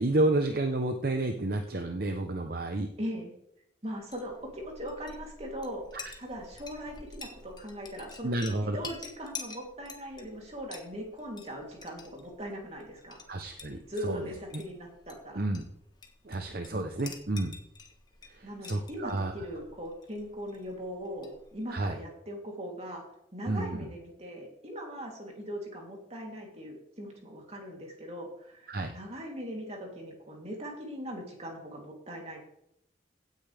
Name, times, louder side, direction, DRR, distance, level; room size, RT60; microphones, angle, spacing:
voice 1, 0.0-2.9 5.9-6.0 8.2-8.8 13.3-14.2 15.3-15.6 16.2-17.5 18.3-19.3 21.7-22.0 23.5-23.9 28.7-28.9, right 2 dB, 55° right, 5 dB, 0.9 m, -30 dB
voice 2, 3.0-3.3 3.8-5.8 6.2-8.3 8.6-13.2 13.9-15.5 18.4-23.0 23.3-32.4, equal, 35° right, 0 dB, 3.1 m, -40 dB
Chink clink, 3.9-21.8, left 4 dB, 25° left, 1.3 m, -49 dB
16.5 x 9.4 x 3.5 m, 0.77 s
head